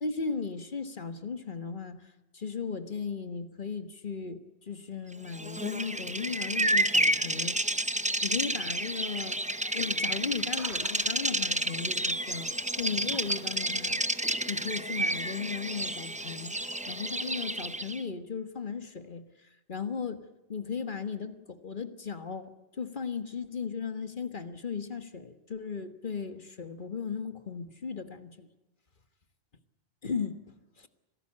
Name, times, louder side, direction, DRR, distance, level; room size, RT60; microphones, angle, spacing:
voice 1, 0.0-7.6 8.2-9.4 9.7-12.5 12.8-14.0 14.5-16.6 16.9-19.2 19.7-28.5 30.0-30.4 30.8-30.9, left 5 dB, 50° left, 1.6 m, -36 dB
Bird vocalization bird call bird song, 5.3-18.0, right 1 dB, 10° right, 0.6 m, -30 dB
sound 1, 9.6-11.1 12.3-13.5 14.1-14.2, right 4 dB, 80° right, 2.4 m, -50 dB
25.5 x 18.0 x 8.7 m
omnidirectional pair, 1.1 m